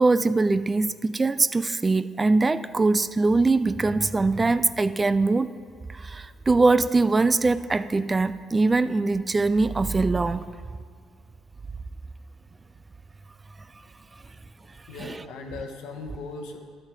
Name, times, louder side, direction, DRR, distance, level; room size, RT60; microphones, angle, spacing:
voice 1, 0.0-5.5 5.9-10.5 15.0-15.2, right 3 dB, 25° right, 14 dB, 0.3 m, -22 dB
voice 2, 14.9-16.6, left 3 dB, 80° left, 3 dB, 1.0 m, -38 dB
12.5 x 5.7 x 4.8 m, 2.1 s
supercardioid pair, 65°, 0 cm